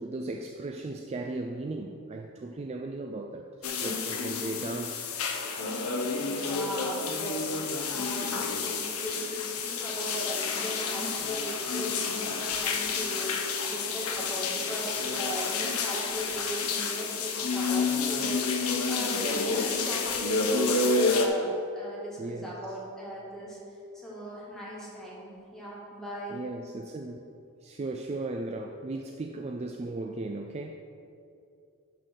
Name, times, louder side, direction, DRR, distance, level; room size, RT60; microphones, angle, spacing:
voice 1, 0.0-5.1 6.0-6.1 22.2-22.6 26.3-27.3 27.6-30.7, right 2 dB, 30° right, 3 dB, 0.4 m, -36 dB
sound 1, 3.6-21.3, left 4 dB, 70° left, 0.9 m, -30 dB
voice 2, 6.2-23.6 23.9-26.4, right 1 dB, ahead, -6 dB, 2.0 m, -38 dB
11.5 x 4.0 x 6.0 m, 2.6 s
head